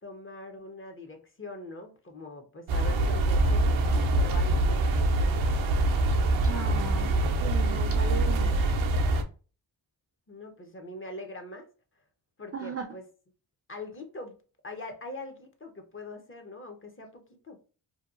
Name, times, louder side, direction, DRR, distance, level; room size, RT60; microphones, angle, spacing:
voice 1, 0.0-5.5 10.3-11.7 12.0-12.1 12.4-13.0 13.7-14.4 14.6-17.6, left 2 dB, 25° left, 4 dB, 0.6 m, -43 dB
sound 1, 2.7-9.2, right 2 dB, 85° right, 0.5 m, -24 dB
voice 2, 6.4-7.1 7.4-8.5 12.5-12.9, right 4 dB, 35° right, 4 dB, 0.4 m, -36 dB
2.8 x 2.2 x 2.4 m, 0.36 s
cardioid pair, 65°, 46 cm